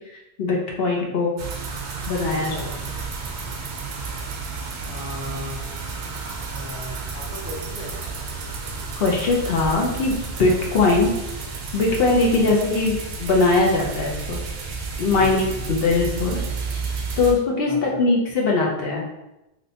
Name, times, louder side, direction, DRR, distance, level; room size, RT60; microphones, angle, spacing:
voice 1, 0.4-1.3 2.1-2.6 9.0-11.1 11.7-14.4 15.0-15.4 15.7-16.4 17.2-19.1, left 3 dB, 65° left, -1 dB, 0.8 m, -20 dB
sound 1, 1.4-17.3, right 4 dB, 70° right, 0.8 m, -31 dB
voice 2, 2.4-2.8 4.9-5.6 6.5-8.1 15.2-15.9 17.0-17.2 17.7-18.0, left 1 dB, 10° right, -5 dB, 0.5 m, -36 dB
3.2 x 2.7 x 2.7 m, 0.93 s
omnidirectional pair, 1.1 m